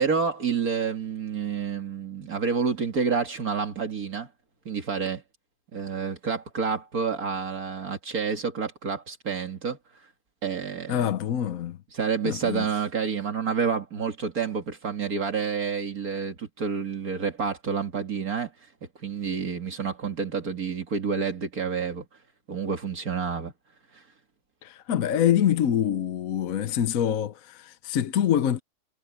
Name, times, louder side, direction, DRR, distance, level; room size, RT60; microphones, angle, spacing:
voice 1, 0.0-4.3 4.7-5.2 5.7-10.0 10.4-11.1 11.9-18.5 19.0-22.1 22.5-23.5 23.9-24.0, right 6 dB, 70° right, 2.6 m, -29 dB
voice 2, 10.9-11.8 12.2-12.7 24.6-28.6, left 10 dB, 65° left, 1.2 m, -25 dB
omnidirectional pair, 1.6 m